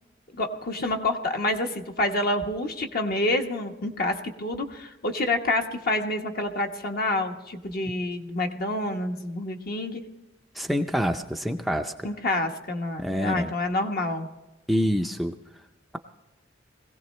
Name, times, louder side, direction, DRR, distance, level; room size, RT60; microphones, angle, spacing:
voice 1, 0.3-10.0 12.0-14.3, left 2 dB, 50° left, 4 dB, 1.2 m, -28 dB
voice 2, 10.5-11.9 13.0-13.5 14.7-15.4, equal, ahead, 4 dB, 0.5 m, -26 dB
22.0 x 16.5 x 3.2 m, 1.1 s
head